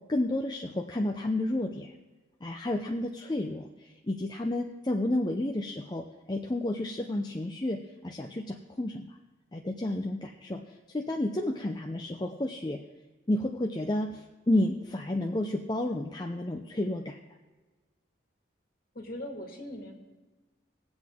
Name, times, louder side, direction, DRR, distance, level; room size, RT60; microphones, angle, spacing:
voice 1, 0.1-1.9 2.4-9.1 9.5-12.8 13.3-17.2, left 1 dB, 20° left, 2 dB, 0.5 m, -31 dB
voice 2, 19.0-19.9, left 1 dB, 50° left, 2 dB, 1.9 m, -40 dB
20.5 x 8.0 x 3.6 m, 1.2 s
head